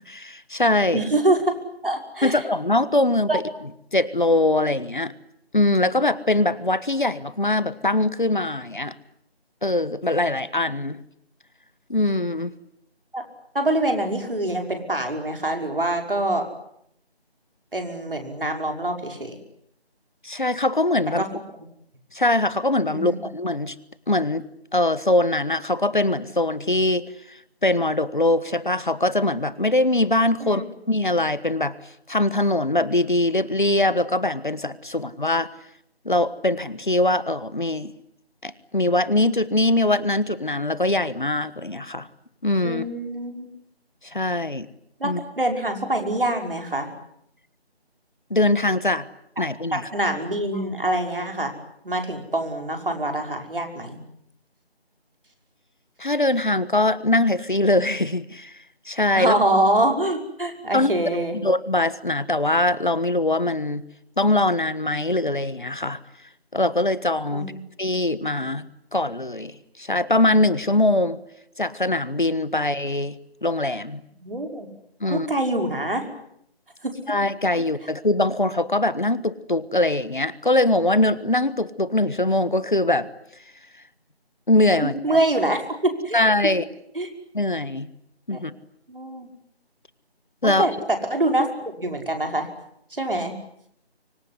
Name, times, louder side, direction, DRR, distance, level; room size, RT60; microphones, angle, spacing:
voice 1, 0.0-1.0 2.2-3.4 3.9-5.1 5.5-8.9 9.6-11.0 11.9-12.5 20.2-21.2 22.1-23.7 24.1-24.4 24.7-31.7 32.1-35.5 36.0-37.9 38.4-42.1 42.4-42.8 44.0-44.7 45.0-45.2 48.3-49.1 49.4-49.9 56.0-58.5 58.9-59.4 60.7-60.9 61.4-63.8 64.2-66.0 66.5-67.5 67.8-68.7 68.9-71.2 71.6-73.1 73.4-74.0 75.0-75.3 77.1-83.1 84.5-85.2 86.1-86.6 87.3-87.9 88.3-88.5 90.4-90.7, left 2 dB, 50° left, 16 dB, 1.4 m, -22 dB
voice 2, 0.9-1.5 1.8-2.4 3.3-3.4 13.1-13.2 13.5-16.5 17.7-19.4 21.2-21.3 22.9-23.2 30.4-30.6 42.6-43.5 45.0-46.9 49.7-51.5 51.8-54.0 59.1-61.4 67.3-67.6 74.2-74.7 75.1-76.1 76.8-77.2 84.8-86.2 87.0-87.1 88.3-88.4 88.9-89.3 90.4-91.5 91.8-92.5 92.9-93.4, right 1 dB, 55° right, 4 dB, 5.7 m, -25 dB
25.0 x 24.5 x 9.7 m, 0.75 s
figure-of-eight pair, 180°, 32 cm